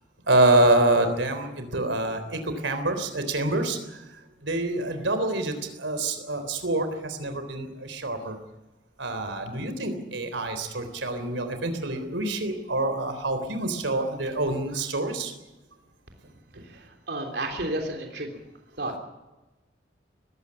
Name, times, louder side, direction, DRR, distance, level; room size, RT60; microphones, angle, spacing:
voice 1, 0.3-4.0 4.4-8.4 9.0-15.3 16.5-16.6, right 2 dB, 90° right, 8 dB, 3.6 m, -26 dB
voice 2, 16.5-18.4 18.8-19.0, right 1 dB, 60° right, 3 dB, 3.3 m, -32 dB
20.5 x 15.5 x 9.8 m, 1.1 s
head